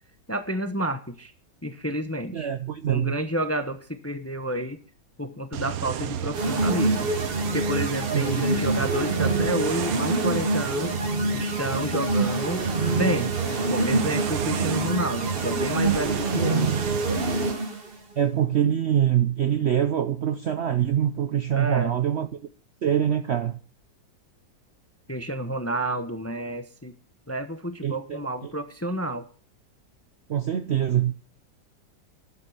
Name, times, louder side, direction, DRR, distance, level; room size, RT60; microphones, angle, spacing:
voice 1, 0.3-1.3 1.6-2.5 2.9-4.8 5.2-7.1 7.5-11.0 11.3-12.7 13.0-13.3 13.7-16.7 21.5-21.9 25.1-26.9 27.3-29.3, right 1 dB, 15° left, 0.5 m, -30 dB
voice 2, 2.3-3.2 8.1-8.5 18.2-22.3 22.8-23.6 27.8-28.5 30.3-31.1, right 10 dB, 85° right, 0.5 m, -24 dB
sound 1, 5.5-17.5, right 10 dB, 60° right, 1.1 m, -32 dB
sound 2, 6.3-17.9, right 2 dB, 30° right, 1.7 m, -26 dB
11.5 x 8.2 x 7.0 m
omnidirectional pair, 2.0 m